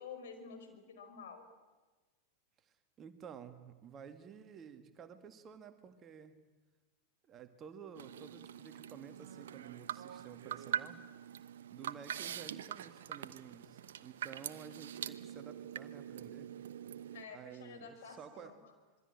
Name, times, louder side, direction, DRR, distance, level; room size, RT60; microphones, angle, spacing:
voice 1, 0.0-1.4 17.1-18.6, left 5 dB, 60° left, 7 dB, 5.4 m, -50 dB
voice 2, 2.6-6.4 7.2-11.0 11.7-16.5 17.3-18.6, right 7 dB, 25° right, 8 dB, 2.0 m, -52 dB
sound 1, 7.9-17.2, right 9 dB, 60° right, 1.1 m, -44 dB
26.5 x 23.0 x 8.9 m, 1.3 s
figure-of-eight pair, 90°, 0 cm